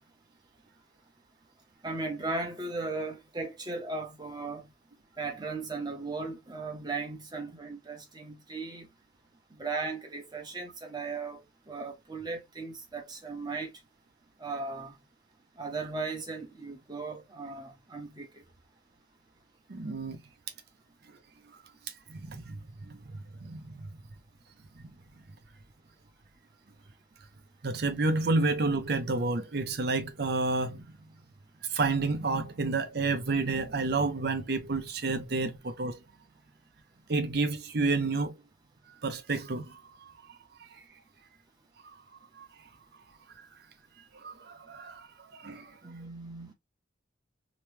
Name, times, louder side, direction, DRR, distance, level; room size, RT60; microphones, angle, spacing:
voice 1, 1.8-4.7 5.2-8.9 9.6-13.7 14.4-15.0 15.6-18.4 45.8-46.5, right 3 dB, 20° right, 0.9 m, -37 dB
voice 2, 19.7-20.2 22.1-23.9 24.8-24.9 27.6-30.9 31.7-36.0 37.1-38.4 39.0-40.1 42.4-42.5 44.1-45.1 45.3-45.8, right 3 dB, 55° right, 0.6 m, -30 dB
3.0 x 2.1 x 3.1 m
head